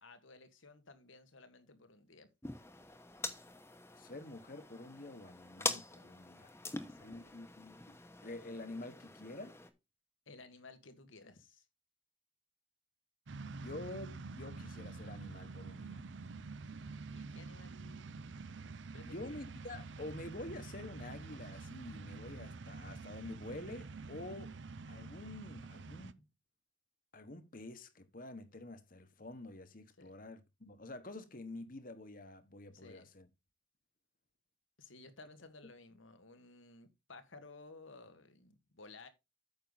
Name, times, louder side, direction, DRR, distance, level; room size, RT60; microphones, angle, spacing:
voice 1, 0.0-2.3 6.7-7.3 10.3-11.7 17.1-18.1 18.9-19.4 30.0-30.1 32.7-33.1 34.8-39.1, left 3 dB, 85° left, 1.7 m, -56 dB
sound 1, 2.4-9.7, left 3 dB, 15° left, 1.0 m, -44 dB
voice 2, 4.0-6.6 7.0-9.6 13.5-16.0 19.0-24.5 24.9-26.3 27.1-33.3, left 2 dB, 45° left, 1.2 m, -48 dB
sound 2, 13.3-26.1, right 4 dB, 70° right, 0.6 m, -47 dB
9.1 x 6.6 x 4.0 m
head